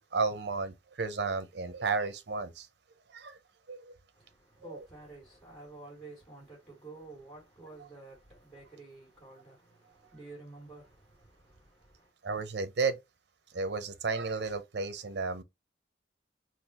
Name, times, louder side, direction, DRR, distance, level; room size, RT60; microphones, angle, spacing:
voice 1, 0.0-2.7 3.1-3.4 3.7-3.9 4.7-4.8 12.2-13.0 13.5-15.4, right 4 dB, 65° right, 0.6 m, -33 dB
voice 2, 4.1-12.1, right 2 dB, 10° left, 2.2 m, -51 dB
3.9 x 2.5 x 2.8 m
head